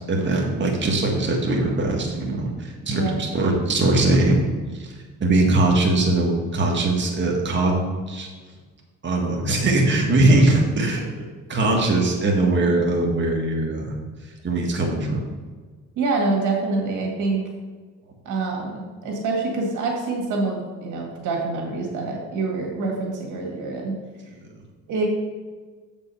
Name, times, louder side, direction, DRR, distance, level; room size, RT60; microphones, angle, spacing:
voice 1, 0.1-4.5 4.8-4.9 5.2-7.8 8.1-8.3 9.0-13.9 14.4-15.2, right 2 dB, 40° right, -1 dB, 1.8 m, -21 dB
voice 2, 16.0-17.4 18.3-23.9 24.9-25.1, right 3 dB, 80° right, -1 dB, 2.0 m, -26 dB
7.7 x 5.3 x 5.6 m, 1.5 s
cardioid pair, 90°, 30 cm